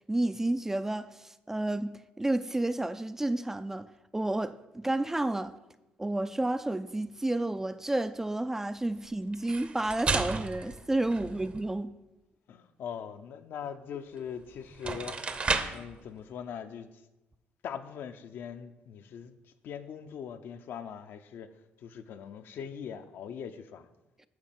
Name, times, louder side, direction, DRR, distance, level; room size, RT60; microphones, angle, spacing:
voice 1, 0.1-5.5 6.0-11.9, right 2 dB, 10° right, 0.3 m, -31 dB
sound 1, 9.3-11.7 14.2-14.3 14.7-15.9, right 4 dB, 30° right, 0.7 m, -33 dB
voice 2, 12.5-15.2 15.7-16.9 17.6-19.4 19.6-21.5 21.8-23.9, left 8 dB, 65° left, 0.7 m, -41 dB
9.5 x 4.4 x 7.6 m
cardioid pair, 115°, 4 cm